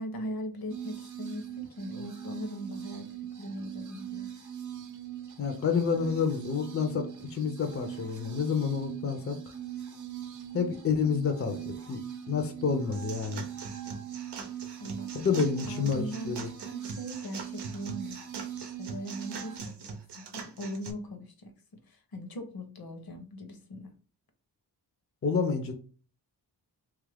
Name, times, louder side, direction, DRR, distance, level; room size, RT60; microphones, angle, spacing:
voice 1, 0.0-3.1 3.4-4.3 14.8-15.1 15.7-16.4 16.6-18.2 18.8-19.7 20.2-23.9, equal, 60° left, 6 dB, 0.8 m, -40 dB
sound 1, 0.7-19.6, right 10 dB, 45° right, 0.6 m, -41 dB
voice 2, 5.4-9.4 10.5-13.4 15.1-16.5 25.2-25.7, left 5 dB, 35° left, 5 dB, 0.5 m, -29 dB
sound 2, 12.9-20.9, right 5 dB, 80° right, 0.7 m, -42 dB
3.0 x 2.4 x 3.3 m, 0.40 s
wide cardioid pair, 95°, 40 cm